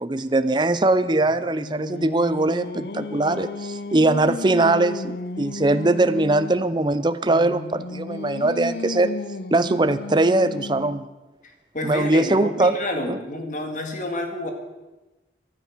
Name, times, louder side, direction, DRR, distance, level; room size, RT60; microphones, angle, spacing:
voice 1, 0.0-9.1 9.5-11.1 11.8-12.8 13.1-13.2, right 2 dB, 25° right, 12 dB, 0.6 m, -21 dB
Singing, 1.2-6.6 7.3-11.1, left 3 dB, 65° left, 0.7 m, -34 dB
voice 2, 11.4-14.5, left 1 dB, 45° left, 5 dB, 2.1 m, -29 dB
14.5 x 12.5 x 6.1 m, 1.1 s
head